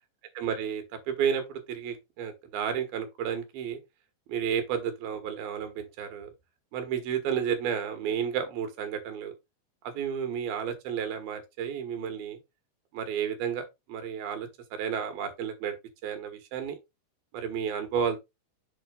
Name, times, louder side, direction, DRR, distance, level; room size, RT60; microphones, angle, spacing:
voice 1, 0.4-3.8 4.3-6.3 6.7-9.3 9.8-12.4 12.9-15.8 16.0-16.8 17.3-18.2, right 8 dB, 80° right, 3.4 m, -32 dB
8.0 x 3.4 x 5.2 m
omnidirectional pair, 4.4 m